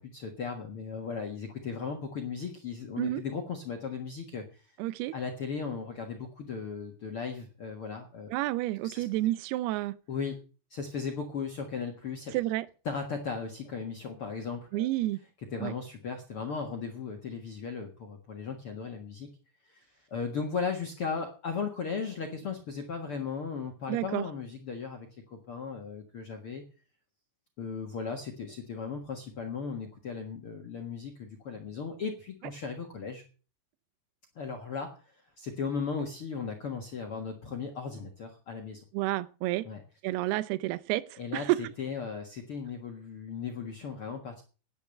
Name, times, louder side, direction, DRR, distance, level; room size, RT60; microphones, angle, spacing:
voice 1, 0.0-4.7 5.1-8.3 8.8-9.0 10.1-10.4 10.7-12.4 12.8-14.9 15.5-19.3 19.6-26.6 27.6-33.2 34.3-38.8 39.6-39.8 41.2-44.4, left 5 dB, 70° left, 1.2 m, -37 dB
voice 2, 4.8-5.1 8.3-10.0 12.3-12.7 14.7-15.2 15.6-15.7 23.9-24.2 38.9-39.7 40.0-41.7, right 17 dB, 80° right, 2.5 m, -30 dB
10.5 x 10.5 x 6.6 m
omnidirectional pair, 5.1 m